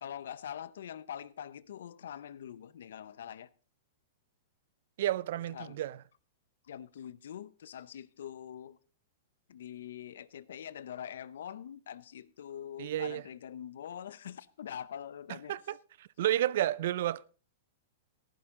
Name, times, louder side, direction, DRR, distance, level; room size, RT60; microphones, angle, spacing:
voice 1, 0.0-3.5 5.5-5.8 6.7-8.8 9.5-15.5, left 9 dB, 80° left, 0.7 m, -44 dB
voice 2, 5.0-6.0 12.8-13.2 15.5-17.3, right 13 dB, 60° right, 0.5 m, -31 dB
14.0 x 11.5 x 3.7 m
supercardioid pair, 160°, 0 cm